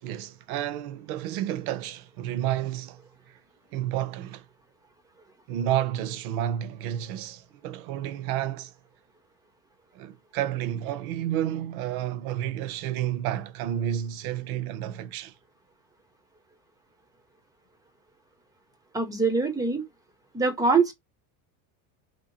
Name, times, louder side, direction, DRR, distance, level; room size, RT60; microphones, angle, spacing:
voice 1, 0.0-3.0 3.3-3.4 3.7-4.5 5.5-8.7 9.9-15.3, right 11 dB, 80° right, 0.7 m, -30 dB
voice 2, 18.9-19.9 20.3-20.9, right 4 dB, 10° right, 0.4 m, -23 dB
3.2 x 2.7 x 2.8 m
supercardioid pair, 145°, 43 cm